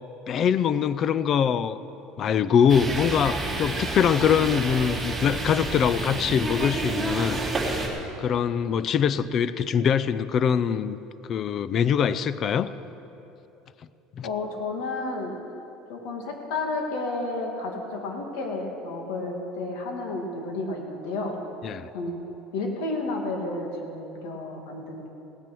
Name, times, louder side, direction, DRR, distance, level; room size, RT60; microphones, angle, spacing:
voice 1, 0.3-1.8 2.2-7.4 8.2-11.0 11.3-12.7 14.2-14.3 21.6-21.9, left 7 dB, 35° left, 15 dB, 0.4 m, -23 dB
sound 1, 2.7-7.9, right 2 dB, 5° right, 2.7 m, -29 dB
voice 2, 14.2-15.4 15.9-21.4 21.9-22.2 22.5-25.1, left 2 dB, 90° left, 2 dB, 2.1 m, -31 dB
17.0 x 9.2 x 6.1 m, 3.0 s
cardioid pair, 145°, 0 cm